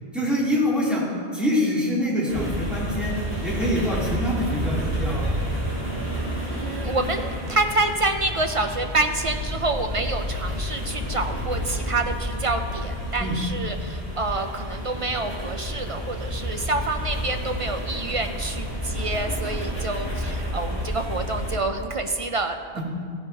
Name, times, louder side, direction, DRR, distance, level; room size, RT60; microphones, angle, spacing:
voice 1, 0.1-1.0 1.3-3.1 3.4-5.3 13.2-13.3 22.7-22.8, equal, ahead, -8 dB, 3.1 m, -25 dB
sound 1, 2.3-21.6, equal, 20° right, 3.3 m, -30 dB
voice 2, 6.5-22.8, right 2 dB, 50° right, 6 dB, 0.4 m, -27 dB
15.0 x 10.0 x 2.9 m, 2.2 s
omnidirectional pair, 1.1 m